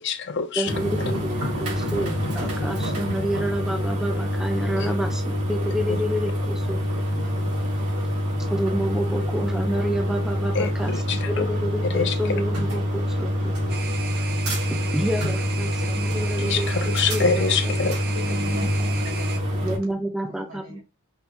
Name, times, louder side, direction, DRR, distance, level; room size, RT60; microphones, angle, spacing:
voice 1, 0.0-0.7 4.8-4.9 5.9-6.0 7.2-7.3 10.5-11.5 11.9-12.4 16.4-18.2, left 5 dB, 55° left, 0.5 m, -26 dB
voice 2, 0.6-5.2 5.5-7.0 8.5-10.9 11.3-13.5 14.7-17.5 17.8-17.9 19.6-20.8, equal, ahead, 0.5 m, -29 dB
sound 1, 0.6-19.8, equal, 90° right, 2.1 m, -26 dB
sound 2, 13.7-19.4, right 7 dB, 45° right, 0.7 m, -36 dB
voice 3, 18.2-19.7 20.2-20.8, right 2 dB, 70° right, 1.5 m, -41 dB
5.3 x 2.2 x 2.9 m
head